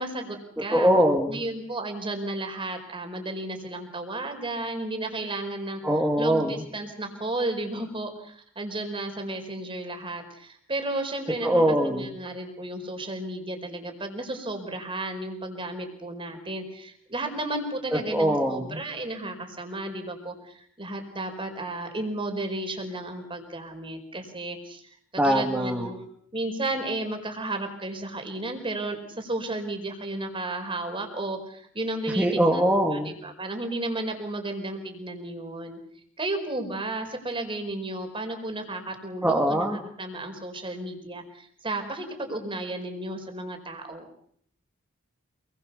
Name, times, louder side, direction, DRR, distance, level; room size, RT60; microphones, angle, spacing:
voice 1, 0.0-0.9 1.3-5.8 6.2-24.8 25.1-26.1 26.3-32.6 32.9-35.8 36.2-44.1, right 2 dB, 25° right, 5 dB, 4.9 m, -33 dB
voice 2, 0.7-1.4 5.8-6.6 11.4-12.2 18.1-18.8 25.2-25.9 32.2-33.1 39.2-39.8, equal, 5° right, -2 dB, 2.5 m, -22 dB
28.0 x 21.5 x 7.0 m, 0.64 s
head